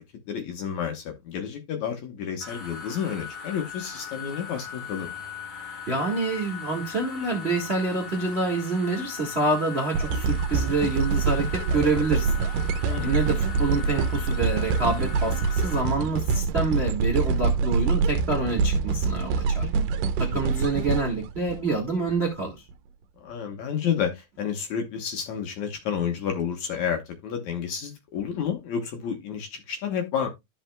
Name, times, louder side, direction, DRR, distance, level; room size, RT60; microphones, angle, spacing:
voice 1, 0.3-5.1 12.9-13.3 20.0-20.5 23.2-30.3, left 7 dB, 65° left, 2.1 m, -30 dB
sound 1, 2.4-15.8, left 6 dB, 10° left, 2.2 m, -39 dB
voice 2, 5.9-12.4 13.0-19.7 20.2-22.5, right 3 dB, 55° right, 0.7 m, -27 dB
sound 2, 9.9-22.1 22.7-22.8, right 5 dB, 80° right, 2.0 m, -25 dB
13.0 x 5.6 x 2.2 m
omnidirectional pair, 4.3 m